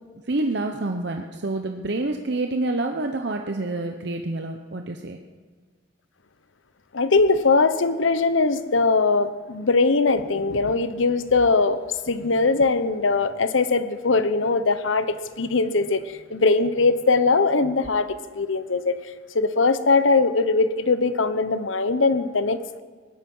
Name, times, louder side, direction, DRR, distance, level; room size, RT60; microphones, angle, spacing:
voice 1, 0.3-5.2, right 2 dB, 60° right, 0.8 m, -27 dB
voice 2, 6.9-11.8 12.1-19.0 19.3-22.8, left 3 dB, 80° left, 0.9 m, -21 dB
19.5 x 13.0 x 5.5 m
head